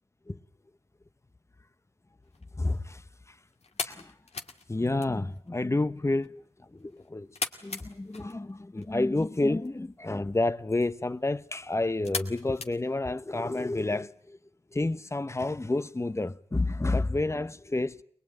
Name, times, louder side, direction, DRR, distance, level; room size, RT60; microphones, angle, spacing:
sound 1, 2.2-13.6, left 4 dB, 80° left, 2.2 m, -42 dB
voice 1, 2.6-3.4 3.8-4.1 4.7-7.3 7.6-14.4 14.7-18.0, left 2 dB, 25° left, 1.0 m, -30 dB
22.0 x 22.0 x 9.1 m
cardioid pair, 55°, 11 cm